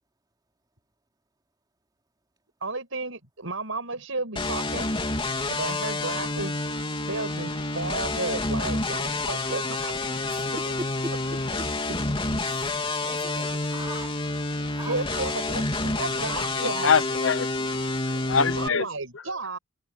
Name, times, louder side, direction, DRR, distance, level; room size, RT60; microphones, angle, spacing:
voice 1, 2.6-4.9 5.5-6.6 7.1-10.4 10.7-10.8 14.9-17.0 18.5-19.6, right 3 dB, 75° right, 7.1 m, -33 dB
sound 1, 4.4-18.7, left 2 dB, 25° left, 3.3 m, -29 dB
voice 2, 10.3-11.7 12.4-12.7 13.0-14.1 14.6-15.6 15.9-16.0, right 1 dB, 20° right, 3.1 m, -41 dB
voice 3, 16.4-17.8 18.1-18.9, left 6 dB, 70° left, 0.9 m, -25 dB
head